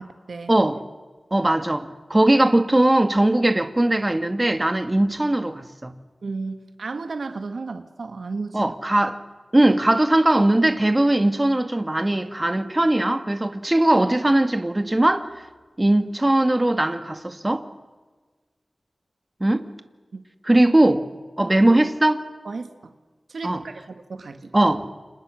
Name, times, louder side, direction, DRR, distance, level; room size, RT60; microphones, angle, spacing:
voice 1, 0.5-0.8 1.3-5.9 8.5-9.2 9.5-15.3 15.8-17.7 19.4-19.7 20.5-21.1 21.4-22.2 23.4-23.6 24.5-24.9, right 1 dB, 25° right, 2.0 m, -19 dB
voice 2, 6.2-8.7 20.1-20.2 22.5-22.9 23.3-24.6, right 4 dB, 85° right, 1.9 m, -33 dB
29.5 x 27.0 x 6.5 m
cardioid pair, 45°, 0 cm